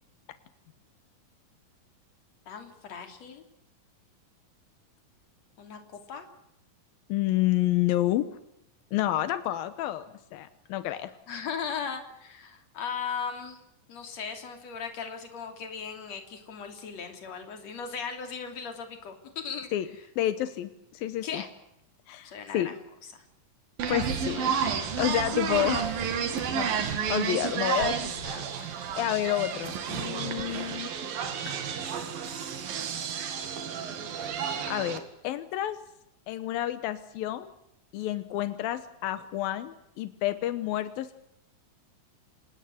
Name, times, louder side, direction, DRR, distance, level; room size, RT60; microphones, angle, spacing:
voice 1, 2.5-3.4 5.6-5.8 6.1-6.3 11.3-13.6 13.9-19.7 21.2-21.5 22.2-22.8, left 6 dB, 50° left, 6 dB, 4.0 m, -37 dB
voice 2, 7.1-8.2 8.9-11.1 19.7-19.9 20.2-21.4 22.1-22.7 23.9-26.7 27.1-30.9 34.7-35.8 36.3-37.5 37.9-41.2, left 13 dB, 85° left, 12 dB, 2.8 m, -30 dB
sound 1, 23.8-35.0, right 7 dB, 85° right, 4.0 m, -31 dB
26.5 x 19.5 x 7.8 m, 0.82 s
omnidirectional pair, 4.0 m